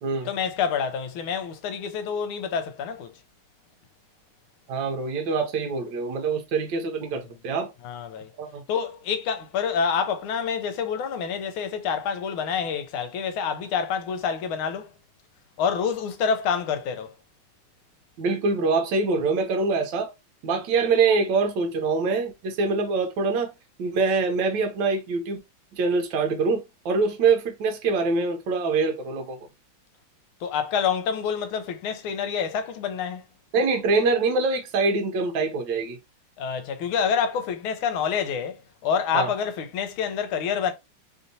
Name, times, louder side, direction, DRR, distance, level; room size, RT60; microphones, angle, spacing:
voice 1, 0.2-3.1 7.2-7.3 7.8-8.3 8.7-14.9 15.6-17.1 30.4-33.2 36.4-40.7, left 7 dB, 80° left, 1.4 m, -27 dB
voice 2, 4.7-7.7 8.4-8.6 18.2-20.1 20.4-23.5 23.8-25.4 25.7-29.4 33.5-36.0 39.1-39.3, right 4 dB, 70° right, 1.3 m, -24 dB
3.4 x 2.7 x 2.6 m
omnidirectional pair, 2.3 m